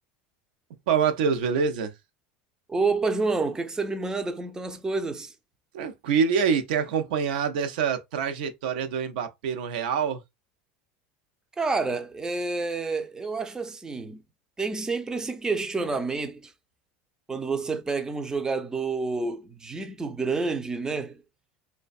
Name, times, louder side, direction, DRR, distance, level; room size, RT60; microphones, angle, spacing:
voice 1, 0.9-1.9 5.7-10.2, right 6 dB, 80° right, 0.5 m, -25 dB
voice 2, 2.7-5.3 11.6-14.2 14.6-16.5 17.3-21.2, right 3 dB, 15° right, 0.4 m, -29 dB
2.5 x 2.1 x 2.4 m
supercardioid pair, 105°, 5 cm